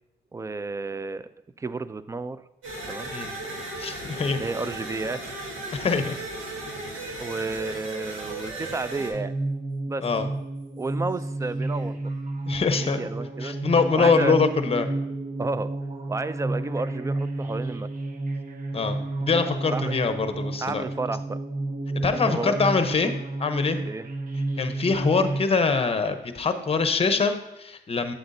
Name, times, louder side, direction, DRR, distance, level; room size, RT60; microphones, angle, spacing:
voice 1, 0.3-1.3 1.6-2.4 2.9-3.1 4.4-5.7 7.2-9.3 9.9-10.1 10.8-11.9 12.8-13.6 14.0-14.4 15.4-15.7 16.1-17.9 19.7-19.9 20.6-21.4 22.2-22.6 23.9-24.1, right 3 dB, 15° right, 14 dB, 0.3 m, -31 dB
sound 1, 2.6-9.1, right 2 dB, 90° right, 1.8 m, -36 dB
voice 2, 3.8-4.4 5.7-6.1 10.0-10.3 12.5-13.0 13.4-14.9 18.7-20.8 21.9-23.1 23.4-23.8 24.6-28.1, left 4 dB, 30° left, 9 dB, 0.8 m, -24 dB
sound 2, 9.1-25.4, right 2 dB, 45° right, 0.8 m, -31 dB
8.1 x 7.8 x 2.6 m, 0.91 s
cardioid pair, 90°, 20 cm